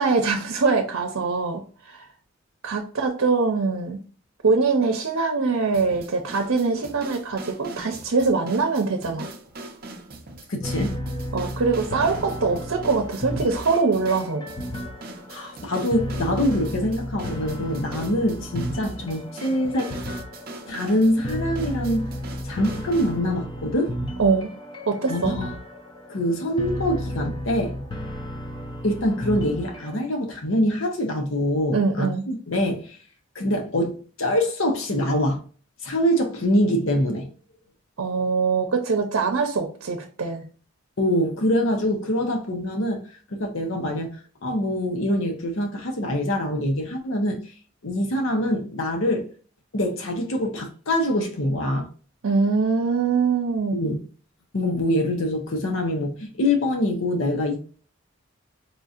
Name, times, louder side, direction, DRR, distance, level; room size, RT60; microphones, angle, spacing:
voice 1, 0.0-2.0 2.6-4.0 4.4-9.3 11.3-14.4 24.2-24.5 24.9-25.3 31.7-32.2 38.0-40.4 52.2-53.8, right 4 dB, 85° right, 0.7 m, -23 dB
sound 1, 5.7-23.2, right 2 dB, 45° right, 0.6 m, -41 dB
voice 2, 10.5-10.9 15.3-19.9 20.7-22.1 22.4-24.0 25.1-25.5 26.1-27.8 28.8-33.0 33.3-35.4 35.8-37.3 41.0-43.0 43.3-47.4 47.8-49.3 49.7-51.9 53.7-54.0 54.5-57.6, left 1 dB, 70° left, 0.9 m, -24 dB
sound 2, 10.6-30.0, equal, 20° left, 0.6 m, -33 dB
4.7 x 2.7 x 2.4 m
head